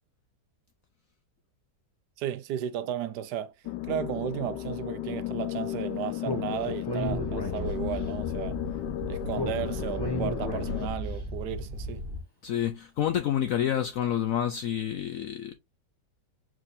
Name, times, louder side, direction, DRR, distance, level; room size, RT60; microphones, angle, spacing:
voice 1, 2.2-3.5 3.8-8.6 9.1-12.1, right 10 dB, 75° right, 1.2 m, -34 dB
sound 1, 3.6-10.9, left 14 dB, 90° left, 1.2 m, -34 dB
Speech, 6.2-8.1 9.3-11.1, equal, 15° left, 0.9 m, -34 dB
sound 2, 7.0-12.2, left 1 dB, 30° right, 1.6 m, -36 dB
voice 2, 12.4-15.6, left 10 dB, 70° left, 0.8 m, -28 dB
4.6 x 3.7 x 2.6 m
omnidirectional pair, 1.8 m